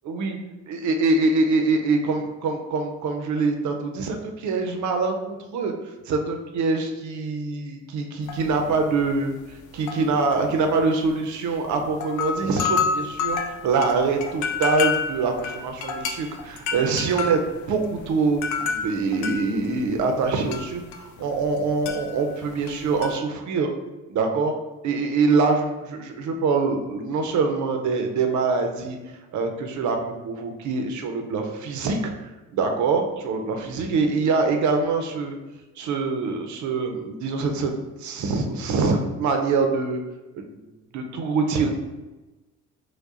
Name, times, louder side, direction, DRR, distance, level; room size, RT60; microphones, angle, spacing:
voice 1, 0.1-0.4 0.7-5.7 6.1-9.4 9.7-23.7 24.1-24.5 24.8-29.0 29.3-30.0 30.2-32.1 32.5-35.4 35.8-37.7 38.0-40.0 40.3-40.6 40.9-41.7, right 4 dB, 70° right, 4 dB, 0.6 m, -24 dB
sound 1, 8.3-8.7 9.0-9.2 9.7-11.1 11.7-11.8 11.9-21.6 21.8-23.2, left 5 dB, 75° left, 0.5 m, -29 dB
4.6 x 2.2 x 2.5 m, 1.1 s
cardioid pair, 90°, 30 cm